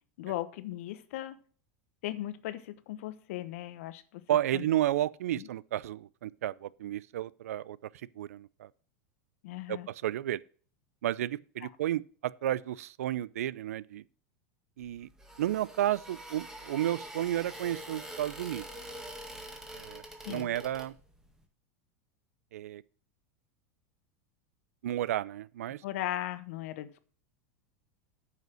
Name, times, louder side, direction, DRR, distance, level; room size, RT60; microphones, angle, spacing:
voice 1, 0.2-1.4 2.0-4.2 4.5-4.6 5.3-5.5 9.4-9.9 20.2-20.5 25.8-27.0, left 14 dB, 70° left, 0.9 m, -37 dB
voice 2, 4.3-7.9 8.2-8.7 9.7-10.4 11.0-14.0 14.8-15.1 15.4-18.7 19.7-20.0 20.3-21.0 22.5-22.8 24.8-25.8, right 12 dB, 85° right, 0.4 m, -32 dB
sound 1, 14.8-21.3, right 1 dB, 5° right, 1.8 m, -45 dB
9.2 x 5.6 x 6.2 m
hypercardioid pair, 115°, 8 cm